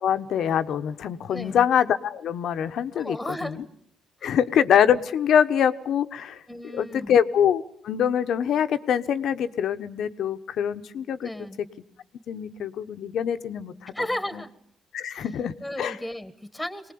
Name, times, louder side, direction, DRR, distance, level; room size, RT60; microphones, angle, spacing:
voice 1, 0.0-3.6 4.2-6.4 6.7-11.3 12.3-14.0 14.3-14.4 14.9-15.9, left 8 dB, 70° left, 10 dB, 1.1 m, -24 dB
voice 2, 1.3-1.6 3.0-3.6 4.2-4.3 6.5-7.2 11.2-11.6 13.9-14.5 15.1-15.3 15.6-16.9, left 1 dB, 5° left, 11 dB, 1.8 m, -34 dB
24.0 x 19.0 x 8.6 m, 0.64 s
cardioid pair, 90°, 0 cm